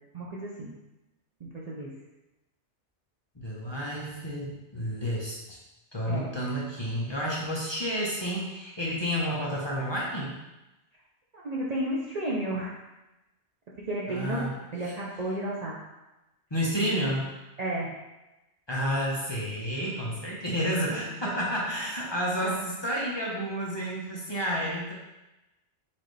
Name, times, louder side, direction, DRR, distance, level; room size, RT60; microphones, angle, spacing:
voice 1, 0.1-0.7 1.4-1.9 6.1-6.3 11.3-12.7 13.9-14.4 14.7-15.8 17.6-17.9 22.4-22.6, right 1 dB, 45° right, -5 dB, 0.6 m, -32 dB
voice 2, 3.4-5.6 5.9-10.4 14.1-14.5 14.8-14.9 16.5-17.3 18.7-24.9, equal, 25° left, -5 dB, 0.7 m, -30 dB
4.2 x 3.9 x 3.2 m, 1.0 s
omnidirectional pair, 1.2 m